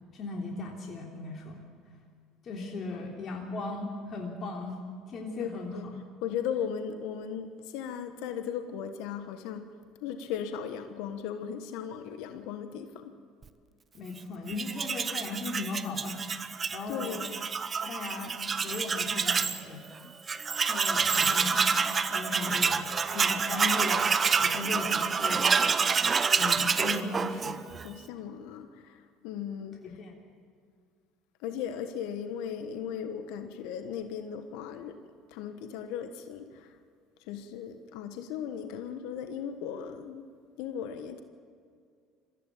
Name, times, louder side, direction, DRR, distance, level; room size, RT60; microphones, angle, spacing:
voice 1, 0.1-1.6 2.4-4.8 5.1-5.8 13.9-16.2 16.5-17.2 17.8-19.8 20.6-21.8 22.1-22.9 23.1-25.5 26.4-27.6 29.8-30.2, left 3 dB, 45° left, 3.2 m, -37 dB
voice 2, 5.4-5.9 6.2-13.1 16.9-17.4 21.1-21.5 27.0-27.1 27.4-30.0 31.4-36.8 37.2-40.3 40.6-41.2, left 8 dB, 70° left, 1.2 m, -37 dB
Tools, 14.5-19.6 19.9-20.0 20.3-27.9, right 5 dB, 35° right, 1.1 m, -27 dB
23.0 x 15.0 x 8.5 m
hypercardioid pair, 70°, 0 cm